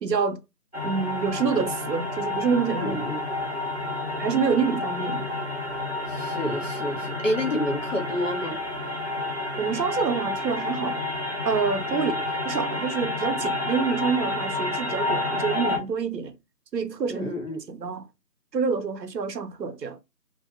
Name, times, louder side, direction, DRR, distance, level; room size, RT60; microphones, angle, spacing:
voice 1, 0.0-0.4 0.8-3.0 4.2-5.3 9.6-11.0 11.4-12.1 12.4-16.3 16.7-17.3 17.7-18.0 18.5-20.0, right 5 dB, 90° right, 0.7 m, -27 dB
sound 1, 0.7-15.8, left 2 dB, 45° right, 0.6 m, -30 dB
voice 2, 2.8-3.2 6.1-8.6 11.9-12.2 17.1-17.6, left 1 dB, 50° left, 1.0 m, -29 dB
2.5 x 2.3 x 2.3 m
figure-of-eight pair, 175°, 49 cm